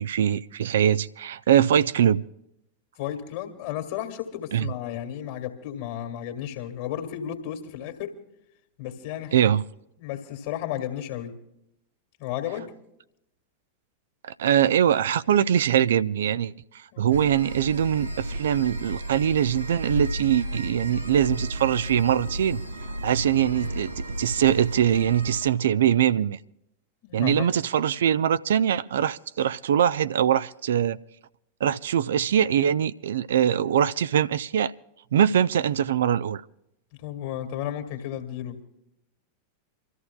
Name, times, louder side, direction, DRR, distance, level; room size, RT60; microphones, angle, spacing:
voice 1, 0.0-2.2 4.5-4.7 9.3-9.6 14.2-16.5 17.0-22.6 23.0-23.9 24.2-26.4 27.1-31.0 31.6-34.7 35.1-36.4, right 9 dB, 60° right, 0.4 m, -22 dB
voice 2, 3.0-8.2 8.8-9.4 10.0-11.4 12.2-12.7 16.9-17.1 27.0-27.5 37.0-38.6, left 11 dB, 50° left, 2.1 m, -33 dB
sound 1, 17.1-25.5, right 1 dB, 85° right, 2.5 m, -33 dB
28.5 x 14.0 x 2.3 m
figure-of-eight pair, 90°, 0 cm